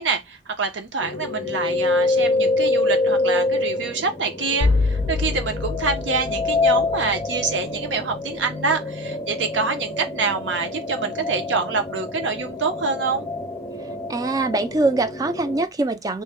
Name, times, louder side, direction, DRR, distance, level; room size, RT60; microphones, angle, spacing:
voice 1, 0.0-13.3, right 4 dB, 80° right, 0.8 m, -26 dB
sound 1, 1.0-15.6, left 2 dB, 20° left, 0.6 m, -26 dB
sound 2, 4.6-7.5, left 3 dB, 70° left, 0.4 m, -25 dB
voice 2, 14.1-16.2, right 2 dB, 20° right, 0.3 m, -23 dB
2.9 x 2.1 x 3.5 m
head